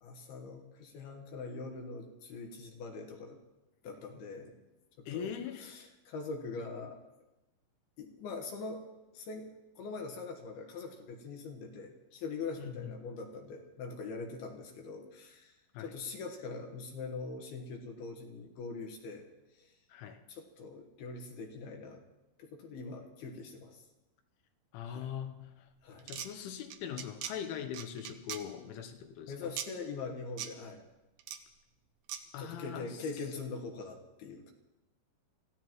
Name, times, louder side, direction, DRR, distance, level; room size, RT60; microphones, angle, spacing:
voice 1, 0.0-3.4 3.8-4.6 5.0-5.3 5.6-7.0 8.0-8.8 9.1-9.5 9.8-19.2 19.5-19.8 20.3-22.0 22.4-23.8 24.9-25.2 25.8-26.1 29.3-30.8 32.4-34.5, left 4 dB, 65° left, 3 dB, 2.9 m, -43 dB
voice 2, 5.1-5.7 12.6-12.9 15.7-15.9 19.9-20.2 24.7-25.7 26.1-29.5 32.3-33.1, left 8 dB, 80° left, 6 dB, 3.3 m, -41 dB
sound 1, 26.0-26.3 26.7-27.3 27.7-28.4 29.6-29.7 30.4-30.5 31.2-31.4 32.1-32.2, right 10 dB, 85° right, 2.1 m, -39 dB
27.5 x 15.5 x 3.1 m, 1.0 s
omnidirectional pair, 5.5 m